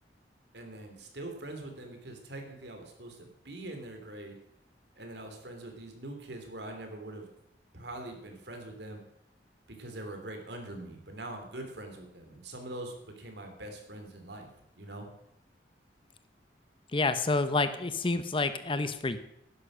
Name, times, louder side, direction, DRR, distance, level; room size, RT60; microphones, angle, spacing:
voice 1, 0.5-4.4 5.0-7.3 7.7-9.0 9.8-14.5 14.8-15.1, right 1 dB, 70° right, 5 dB, 3.0 m, -43 dB
voice 2, 16.9-19.2, left 3 dB, 30° left, 11 dB, 0.8 m, -28 dB
11.5 x 10.5 x 6.3 m, 0.78 s
head